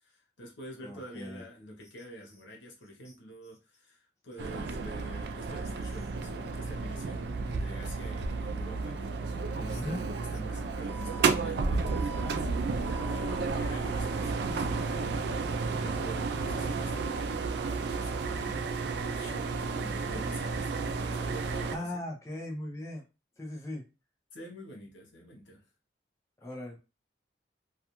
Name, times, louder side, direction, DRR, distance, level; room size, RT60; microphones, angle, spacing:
voice 1, 0.1-4.0 4.2-9.1 9.6-12.1 12.5-22.1 24.3-25.6, equal, 85° left, 0.9 m, -47 dB
voice 2, 0.8-1.5 3.0-3.1 9.6-10.0 21.7-23.0 23.4-23.8 26.4-26.8, left 1 dB, 15° left, 0.5 m, -38 dB
sound 1, 4.4-21.8, right 4 dB, 65° right, 0.3 m, -32 dB
2.4 x 2.3 x 2.9 m
head